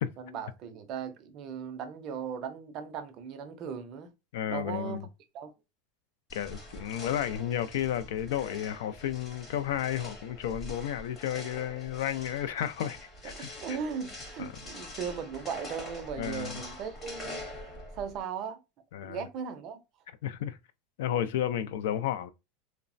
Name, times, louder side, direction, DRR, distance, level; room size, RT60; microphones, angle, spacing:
voice 1, 0.2-4.1 4.5-5.1 5.3-5.5 13.2-17.4 17.9-18.6 19.0-19.8, right 7 dB, 35° right, 0.4 m, -38 dB
voice 2, 4.3-5.0 6.3-13.0 13.2-13.5 14.4-14.5 16.2-16.6 18.9-19.2 20.2-20.6 21.0-22.3, left 10 dB, 75° left, 0.3 m, -32 dB
sound 1, 6.3-18.2, left 1 dB, 20° left, 0.7 m, -45 dB
3.1 x 2.0 x 2.5 m
supercardioid pair, 165°, 0 cm